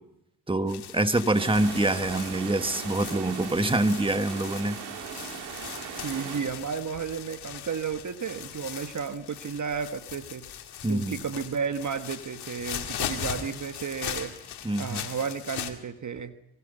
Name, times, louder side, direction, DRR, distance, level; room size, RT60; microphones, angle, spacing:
voice 1, 0.5-4.8 10.8-11.2 14.6-15.0, right 2 dB, 15° right, 9 dB, 1.7 m, -25 dB
sound 1, 0.7-15.7, left 10 dB, 80° left, 2.2 m, -39 dB
sound 2, 1.3-6.4, right 7 dB, 90° right, 2.9 m, -38 dB
voice 2, 6.0-10.5 10.9-14.3 14.8-16.4, right 6 dB, 50° right, 9 dB, 1.3 m, -33 dB
24.5 x 22.5 x 5.6 m, 0.84 s
supercardioid pair, 50°, 39 cm